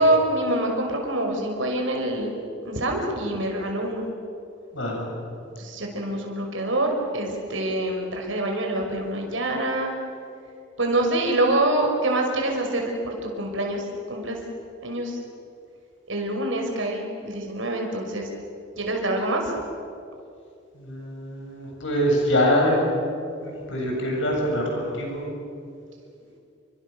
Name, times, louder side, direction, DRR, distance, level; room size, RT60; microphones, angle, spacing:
voice 1, 0.0-2.3 2.6-4.1 5.6-9.9 10.8-13.8 14.1-14.4 14.8-15.2 16.1-18.2 18.8-19.4, right 1 dB, 80° right, 2 dB, 5.6 m, -25 dB
voice 2, 4.7-5.1 20.7-22.8 23.4-25.3, equal, 75° left, -1 dB, 7.8 m, -24 dB
29.5 x 25.0 x 7.0 m, 2.5 s
head